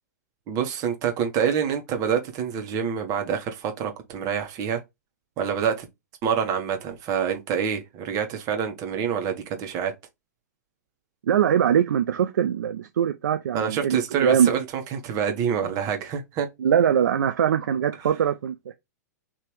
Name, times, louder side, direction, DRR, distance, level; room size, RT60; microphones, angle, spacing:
voice 1, 0.5-4.8 5.4-5.9 6.2-9.9 13.5-16.5, right 7 dB, 40° right, 1.4 m, -26 dB
voice 2, 11.3-14.5 16.6-18.7, right 9 dB, 80° right, 0.4 m, -22 dB
3.4 x 2.9 x 4.5 m
hypercardioid pair, 120°, 10 cm